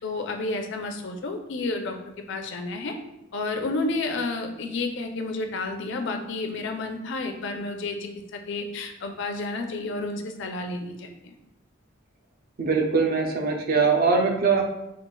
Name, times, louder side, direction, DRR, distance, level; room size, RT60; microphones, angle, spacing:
voice 1, 0.0-2.9 3.3-11.3, left 3 dB, 65° left, 4 dB, 0.5 m, -31 dB
voice 2, 12.6-14.6, right 4 dB, 50° right, 2 dB, 0.6 m, -22 dB
5.5 x 2.3 x 2.3 m, 0.88 s
head